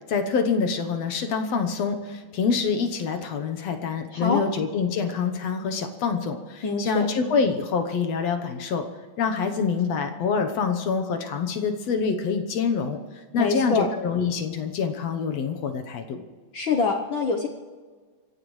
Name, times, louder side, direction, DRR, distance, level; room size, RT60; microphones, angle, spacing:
voice 1, 0.1-8.9 9.2-13.0 13.3-16.2, left 5 dB, 65° left, 6 dB, 2.0 m, -26 dB
voice 2, 4.1-4.4 6.6-7.1 13.4-13.9 16.5-17.5, left 4 dB, 85° left, 3 dB, 1.0 m, -25 dB
28.5 x 15.5 x 3.2 m, 1.5 s
omnidirectional pair, 3.6 m